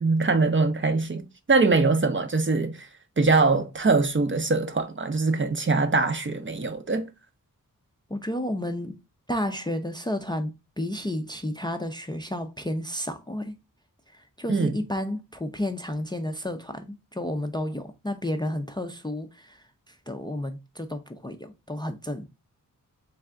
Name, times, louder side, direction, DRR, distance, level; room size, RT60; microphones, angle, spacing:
voice 1, 0.0-2.9 3.2-7.1 14.5-14.8, right 3 dB, 35° right, 0.6 m, -23 dB
voice 2, 8.1-9.0 9.3-13.6 14.1-22.3, left 1 dB, 15° left, 0.4 m, -32 dB
3.5 x 3.3 x 3.5 m
wide cardioid pair, 95°, 34 cm